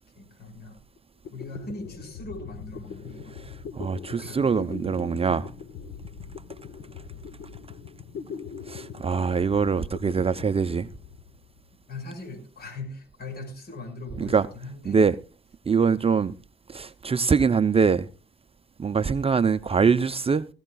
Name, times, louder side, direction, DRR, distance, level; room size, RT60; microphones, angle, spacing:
voice 1, 0.2-0.8 1.3-3.4 4.2-4.6 11.9-15.0, left 2 dB, 50° left, 5.5 m, -40 dB
sound 1, 1.0-1.1 1.2-11.7, left 6 dB, 70° left, 1.5 m, -41 dB
voice 2, 3.3-5.5 8.7-10.9 14.2-14.5 14.8-15.2 15.7-16.3 16.7-18.1 18.8-20.5, right 5 dB, 30° right, 0.6 m, -23 dB
18.0 x 15.5 x 2.3 m
cardioid pair, 90°, 20 cm